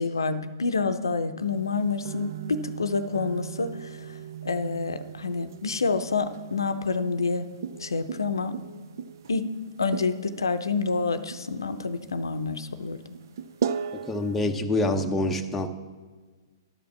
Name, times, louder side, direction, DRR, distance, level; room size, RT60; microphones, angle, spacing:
voice 1, 0.0-7.5 7.8-8.5 9.3-9.5 9.8-13.0, left 4 dB, 80° left, 10 dB, 0.6 m, -28 dB
sound 1, 1.4-14.5, right 7 dB, 60° right, 0.5 m, -38 dB
voice 2, 13.9-15.7, left 2 dB, 10° left, 4 dB, 0.7 m, -26 dB
11.0 x 5.2 x 6.9 m, 1.4 s
figure-of-eight pair, 120°, 2 cm